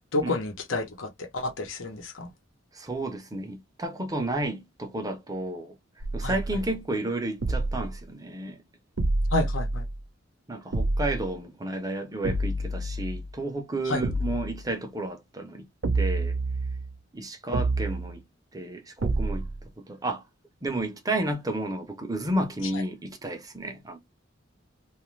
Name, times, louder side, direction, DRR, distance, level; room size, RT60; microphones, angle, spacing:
voice 1, 0.1-2.3 6.2-6.6 9.3-9.8 13.9-14.0, left 2 dB, 85° left, 0.9 m, -30 dB
voice 2, 2.7-5.7 6.1-8.6 10.5-15.7 15.9-16.4 17.1-18.2 18.5-19.5 19.8-20.2 20.6-24.0, right 1 dB, 20° right, 0.6 m, -32 dB
sound 1, 6.0-6.8 7.4-8.0 9.0-10.0 10.7-11.3 12.2-13.3 14.0-14.6 15.8-17.0 17.5-18.2 19.0-19.6, right 2 dB, 90° right, 0.6 m, -28 dB
2.5 x 2.4 x 3.1 m
head